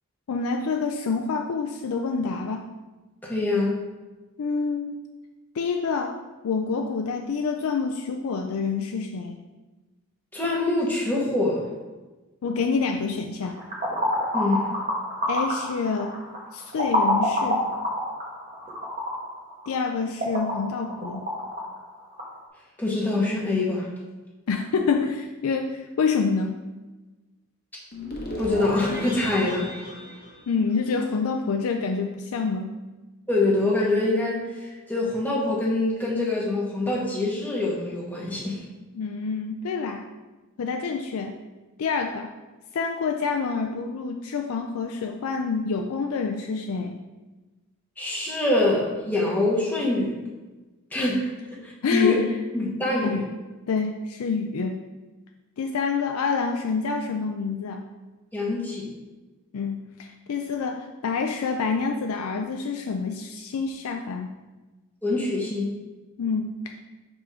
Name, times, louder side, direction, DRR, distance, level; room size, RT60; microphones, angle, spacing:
voice 1, 0.3-2.7 4.4-5.0 5.5-6.1 6.4-9.4 12.4-13.6 15.3-16.1 16.5-17.6 19.7-21.3 24.5-26.6 30.5-32.7 38.9-40.1 40.6-41.4 41.8-42.3 42.7-47.0 51.8-52.3 53.0-53.2 53.7-54.8 55.6-57.8 59.5-64.3 66.2-66.8, left 5 dB, 80° left, 4 dB, 0.4 m, -27 dB
voice 2, 3.2-3.8 10.3-11.6 14.3-14.6 22.8-23.9 28.4-29.7 33.3-38.6 48.0-50.1 50.9-51.3 51.6-52.1 52.5-53.2 58.3-58.9 65.0-65.8, left 2 dB, 10° left, -5 dB, 1.2 m, -24 dB
sound 1, 13.4-22.4, equal, 35° right, 1.2 m, -28 dB
sound 2, 27.9-31.2, left 1 dB, 45° left, 1.0 m, -35 dB
4.8 x 3.7 x 5.6 m, 1.2 s
head